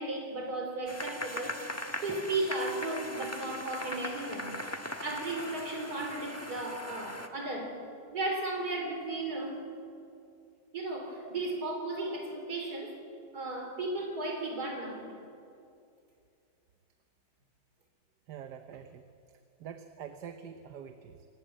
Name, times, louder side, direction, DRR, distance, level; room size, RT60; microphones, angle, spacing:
voice 1, 0.0-1.6 2.0-4.6 5.0-7.8 8.1-9.6 10.7-13.0 13.3-15.1, right 2 dB, 65° right, 3 dB, 4.2 m, -35 dB
sound 1, 0.9-7.3, left 1 dB, 10° left, 1.2 m, -40 dB
voice 2, 18.3-19.1 19.6-21.3, right 8 dB, 80° right, 8 dB, 1.5 m, -45 dB
26.5 x 18.5 x 7.5 m, 2.5 s
omnidirectional pair, 1.8 m